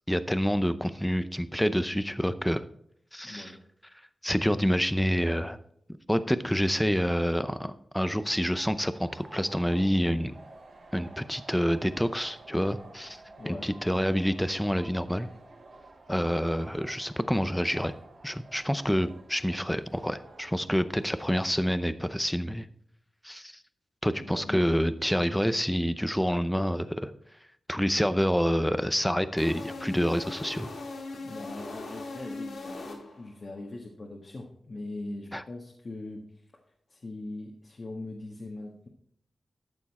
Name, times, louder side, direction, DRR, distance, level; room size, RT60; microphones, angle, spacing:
voice 1, 0.1-2.6 3.1-3.5 4.2-5.6 6.1-10.3 10.9-13.2 13.5-15.3 16.1-17.9 18.2-22.7 23.2-23.6 24.0-27.1 27.7-30.7 35.3-35.4, equal, 5° left, 12 dB, 0.6 m, -27 dB
voice 2, 3.2-3.6 13.4-13.7 24.2-24.6 31.2-36.4 36.9-38.9, left 2 dB, 40° left, -1 dB, 1.5 m, -41 dB
sound 1, 8.2-21.3, right 2 dB, 70° right, 3.3 m, -51 dB
sound 2, 29.4-33.4, left 3 dB, 85° left, 2.5 m, -39 dB
13.0 x 7.0 x 4.2 m, 0.68 s
wide cardioid pair, 110°, 0 cm